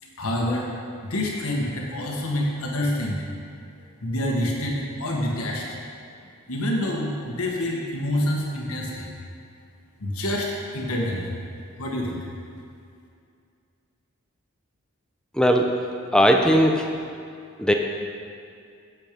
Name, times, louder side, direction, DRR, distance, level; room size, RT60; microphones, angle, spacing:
voice 1, 0.0-0.7 1.1-3.2 4.0-5.6 6.5-9.1 10.0-11.3 11.8-12.3, left 1 dB, 80° left, -1 dB, 1.4 m, -27 dB
voice 2, 15.3-15.7 16.1-16.9 17.6-17.7, equal, 5° left, 3 dB, 0.5 m, -18 dB
8.7 x 7.6 x 5.2 m, 2.4 s
head